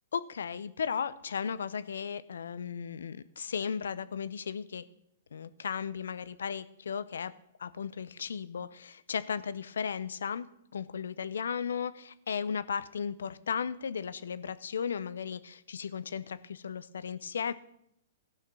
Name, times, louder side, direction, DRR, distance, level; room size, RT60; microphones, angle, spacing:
voice 1, 0.1-4.8 5.3-7.3 7.6-10.5 10.7-17.5, left 7 dB, 75° left, 16 dB, 0.6 m, -35 dB
14.5 x 5.7 x 6.2 m, 0.76 s
hypercardioid pair, 125°, 0 cm